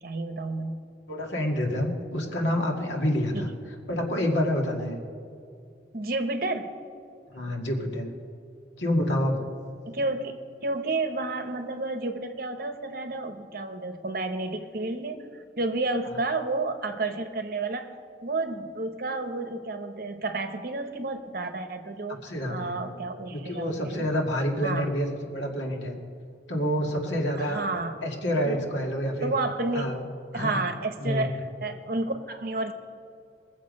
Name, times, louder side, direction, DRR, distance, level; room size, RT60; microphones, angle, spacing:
voice 1, 0.0-0.8 2.2-2.3 3.3-3.5 5.9-6.8 9.9-15.3 15.6-17.9 18.2-22.2 22.5-24.0 24.6-24.9 27.4-27.9 28.4-28.6 29.2-30.0 30.3-32.7, right 2 dB, 50° right, 7 dB, 0.9 m, -31 dB
voice 2, 1.1-3.5 3.9-4.9 7.3-8.1 8.8-9.5 22.2-22.9 23.3-25.1 25.3-25.9 26.5-27.7 28.0-29.3 29.7-30.0 30.3-30.6 31.0-31.3, equal, 80° left, 1 dB, 2.0 m, -28 dB
21.0 x 7.4 x 5.3 m, 2.5 s
head